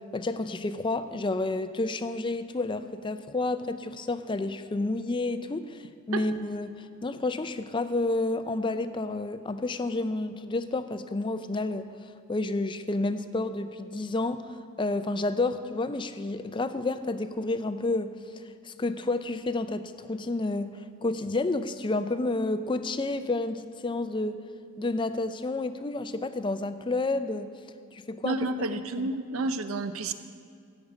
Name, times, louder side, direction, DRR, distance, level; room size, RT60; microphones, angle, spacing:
voice 1, 0.1-5.8 6.1-6.7 7.0-11.9 12.3-18.1 18.6-20.7 21.0-24.4 24.8-27.5 27.9-28.4, left 2 dB, 20° left, 11 dB, 0.4 m, -30 dB
voice 2, 28.2-30.1, right 2 dB, 75° right, 10 dB, 0.7 m, -30 dB
15.5 x 5.2 x 8.1 m, 2.3 s
head